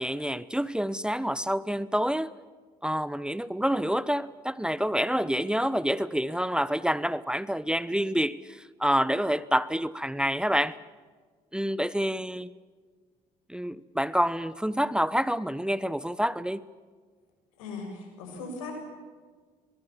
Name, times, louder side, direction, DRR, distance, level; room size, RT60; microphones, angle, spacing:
voice 1, 0.0-2.3 2.8-10.8 11.5-12.5 13.5-16.6, equal, 5° right, 0.9 m, -27 dB
voice 2, 17.6-18.7, left 3 dB, 90° left, 7.2 m, -38 dB
23.5 x 22.0 x 7.3 m
hypercardioid pair, 60°, 17 cm